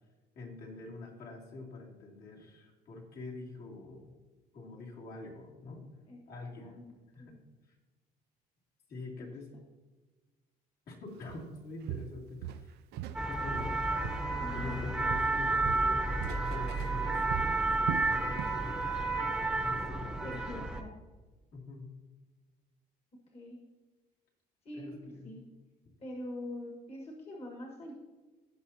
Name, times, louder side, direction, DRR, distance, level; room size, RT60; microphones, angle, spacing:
voice 1, 0.3-4.2 4.5-5.8 6.3-6.7 7.1-7.3 7.7-7.8 8.9-9.5 10.9-12.8 13.3-13.9 14.4-16.1 16.5-19.1 19.6-20.5 21.5-21.9 24.7-25.3, left 3 dB, 70° left, -4 dB, 2.8 m, -45 dB
voice 2, 6.6-6.9 7.2-7.4 9.2-9.3 14.4-14.9 20.2-20.9 23.3-23.6 24.6-25.0 25.2-25.4 26.0-27.9, left 1 dB, 35° left, 0 dB, 1.5 m, -44 dB
Walk footsteps, 11.3-11.5 11.9-13.3 13.5-14.8 15.1-18.6 18.9-19.2 19.7-19.8, right 12 dB, 80° right, 0.4 m, -40 dB
sound 1, 13.1-20.8, right 2 dB, 5° right, 0.9 m, -31 dB
16.5 x 5.9 x 2.8 m, 1.3 s
cardioid pair, 110°, 17 cm